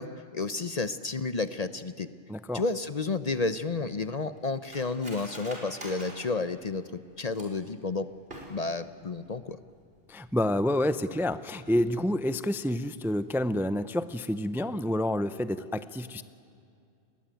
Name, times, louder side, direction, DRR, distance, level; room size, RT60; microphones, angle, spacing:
voice 1, 0.0-2.1 2.5-6.9 7.2-8.1 8.5-9.6, left 3 dB, 40° left, 12 dB, 0.8 m, -31 dB
voice 2, 2.3-2.6 10.1-16.2, left 1 dB, 5° right, 13 dB, 0.6 m, -28 dB
Cutlery silverware, 3.3-7.7 8.2-8.9 9.2-9.3 9.6-10.0 10.3-10.5, right 1 dB, 60° right, 5.5 m, -46 dB
30.0 x 21.5 x 9.1 m, 2.4 s
omnidirectional pair, 1.1 m